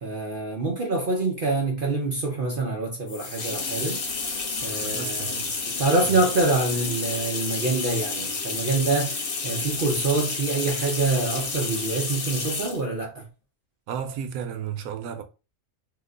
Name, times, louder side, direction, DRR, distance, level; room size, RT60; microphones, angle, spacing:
voice 1, 0.0-4.0 4.6-5.4 5.8-13.3, right 3 dB, 50° right, 0.7 m, -26 dB
sound 1, 3.1-12.9, left 4 dB, 70° left, 1.2 m, -30 dB
voice 2, 4.8-5.8 6.1-6.2 13.9-15.2, right 8 dB, 85° right, 1.1 m, -33 dB
2.8 x 2.2 x 3.7 m
omnidirectional pair, 1.5 m